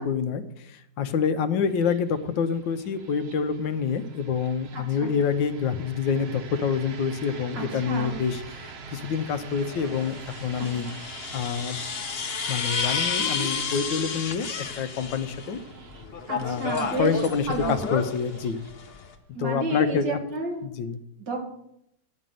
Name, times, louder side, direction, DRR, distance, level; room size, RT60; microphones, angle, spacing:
voice 1, 0.0-10.9 11.3-11.8 12.5-14.5 14.8-15.6 16.4-16.7 17.0-18.6 19.4-20.2 20.6-21.0, left 6 dB, 85° left, 10 dB, 1.5 m, -27 dB
sound 1, 1.7-20.6, right 5 dB, 50° right, 0.8 m, -46 dB
voice 2, 4.7-5.1 7.5-8.2 10.6-11.0 13.2-13.5 16.3-17.2 17.5-17.9 19.3-20.7 21.2-21.4, right 2 dB, 75° right, 1 dB, 2.7 m, -31 dB
sound 2, 8.1-8.2 9.6-15.6 15.9-19.1, left 5 dB, 45° left, 0.9 m, -32 dB
11.0 x 5.4 x 7.6 m, 0.79 s
omnidirectional pair, 2.0 m